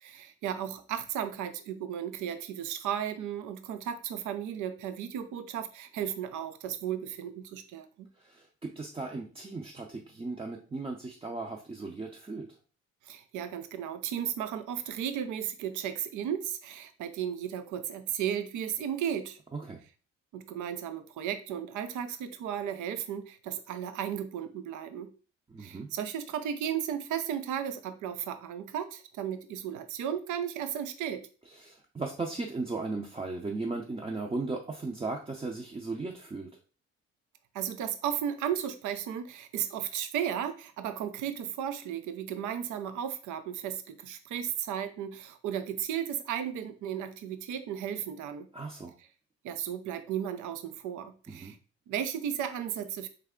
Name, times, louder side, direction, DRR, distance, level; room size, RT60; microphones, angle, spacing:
voice 1, 0.0-8.1 13.0-19.4 20.3-25.1 25.6-31.3 37.5-48.5 49.4-51.6 51.9-53.1, right 9 dB, 80° right, 10 dB, 0.6 m, -35 dB
voice 2, 8.2-12.6 19.5-19.8 25.5-25.9 31.5-36.5 48.5-48.9 51.3-51.5, right 3 dB, 20° right, 1 dB, 0.6 m, -37 dB
3.4 x 3.2 x 3.6 m, 0.37 s
cardioid pair, 90°, 30 cm